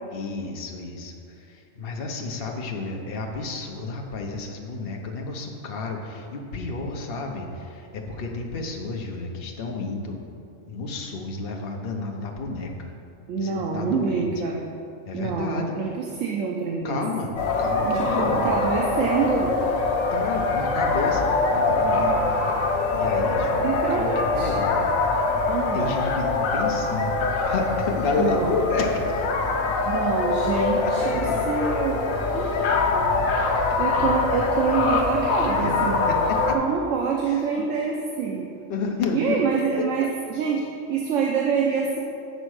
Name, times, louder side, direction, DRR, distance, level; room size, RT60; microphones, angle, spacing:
voice 1, 0.1-10.2 10.7-12.9 13.4-14.3 15.1-15.7 16.8-17.3 17.6-18.5 20.1-22.4 22.9-24.9 25.7-27.2 27.4-29.5 30.8-31.5 35.6-36.6 37.2-37.5 38.7-39.4 39.8-40.1, left 3 dB, 50° left, 1 dB, 1.0 m, -31 dB
voice 2, 13.3-14.6 15.1-17.0 17.8-19.6 23.5-24.5 25.5-25.9 28.2-28.6 29.8-32.0 32.3-33.0 33.8-36.1 36.5-38.5 39.1-42.0, right 5 dB, 80° right, 0 dB, 1.0 m, -26 dB
sound 1, 17.4-36.5, left 3 dB, 85° left, 1.1 m, -24 dB
8.0 x 4.3 x 6.3 m, 2.6 s
omnidirectional pair, 1.3 m